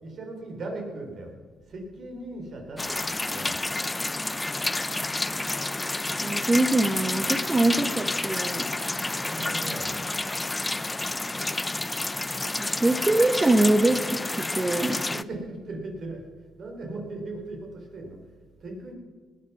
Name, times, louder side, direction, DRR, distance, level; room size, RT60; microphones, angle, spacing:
voice 1, 0.0-1.3 1.7-3.6 9.2-10.0 15.1-16.2 16.6-18.2 18.6-18.9, right 2 dB, 55° right, 2 dB, 3.9 m, -38 dB
sound 1, 2.8-15.2, left 2 dB, 15° left, 0.5 m, -29 dB
voice 2, 6.2-8.6 12.6-14.0 14.3-15.0, right 2 dB, 20° right, 6 dB, 1.1 m, -23 dB
19.5 x 9.2 x 6.1 m, 1.4 s
cardioid pair, 90°, 0 cm